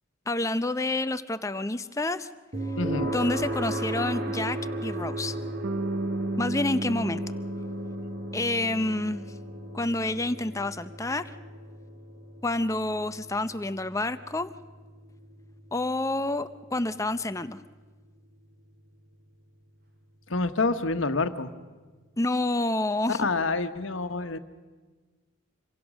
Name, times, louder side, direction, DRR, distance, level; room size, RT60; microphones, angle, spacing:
voice 1, 0.3-2.3 3.1-5.4 6.4-7.2 8.3-9.2 9.7-11.3 12.4-14.5 15.7-17.6 22.2-23.2, left 2 dB, 15° left, 12 dB, 0.6 m, -28 dB
sound 1, 2.5-17.5, right 1 dB, 50° right, 2.4 m, -36 dB
voice 2, 2.8-3.1 20.3-21.5 23.1-24.4, left 3 dB, 80° left, 8 dB, 1.3 m, -27 dB
Bass guitar, 5.6-9.8, right 2 dB, 80° right, 1.1 m, -34 dB
27.0 x 23.0 x 6.2 m, 1.4 s
head